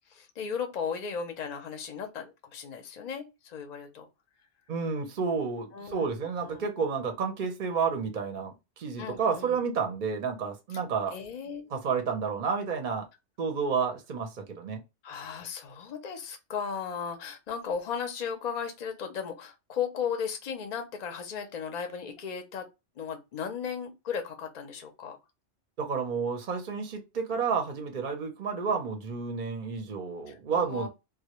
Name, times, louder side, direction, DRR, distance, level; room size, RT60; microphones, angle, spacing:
voice 1, 0.1-4.1 5.7-6.6 9.0-9.6 11.1-11.7 15.0-22.6 23.0-25.2 30.3-30.9, left 6 dB, 45° left, 0.6 m, -36 dB
voice 2, 4.7-11.2 11.7-13.1 13.4-14.8 25.8-30.9, right 5 dB, 50° right, 0.7 m, -30 dB
2.2 x 2.1 x 2.8 m
omnidirectional pair, 1.2 m